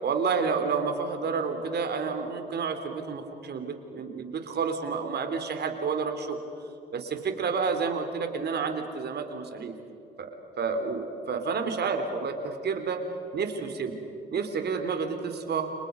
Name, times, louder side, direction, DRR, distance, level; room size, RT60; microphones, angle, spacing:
voice 1, 0.0-6.4 6.9-9.7 10.2-10.3 10.6-13.0 13.3-14.0 14.3-15.7, right 5 dB, 55° right, 6 dB, 3.8 m, -30 dB
30.0 x 28.0 x 5.4 m, 3.0 s
hypercardioid pair, 50°, 20 cm